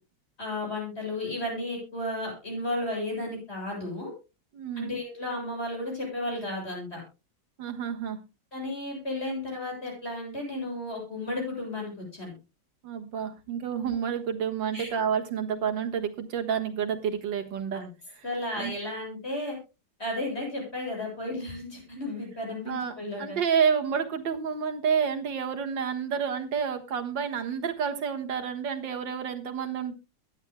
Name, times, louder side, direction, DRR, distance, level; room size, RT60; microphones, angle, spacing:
voice 1, 0.4-4.1 4.8-7.0 8.5-12.3 14.7-14.9 17.7-17.9 18.2-19.5 20.0-23.4, left 1 dB, 35° left, -1 dB, 8.1 m, -33 dB
voice 2, 4.5-4.9 7.6-8.2 12.8-17.8 18.1-18.3 18.6-18.7 22.7-29.9, right 7 dB, 85° right, 5 dB, 2.2 m, -29 dB
22.5 x 10.0 x 2.2 m, 0.29 s
omnidirectional pair, 2.0 m